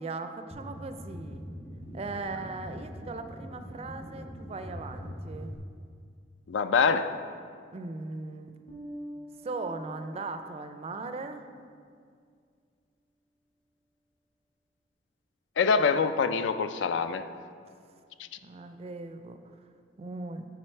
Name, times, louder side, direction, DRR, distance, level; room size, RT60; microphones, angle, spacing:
voice 1, 0.0-1.4 1.9-5.5 7.7-8.5 9.4-11.4 18.4-19.4 20.0-20.5, right 3 dB, 35° right, 8 dB, 0.4 m, -38 dB
sound 1, 0.5-5.6, equal, 15° left, 0.6 m, -42 dB
voice 2, 6.5-7.1 15.6-17.2, left 5 dB, 75° left, 11 dB, 0.3 m, -25 dB
Bass guitar, 8.7-11.1, equal, 45° left, 0.9 m, -45 dB
7.8 x 4.8 x 4.4 m, 2.2 s
head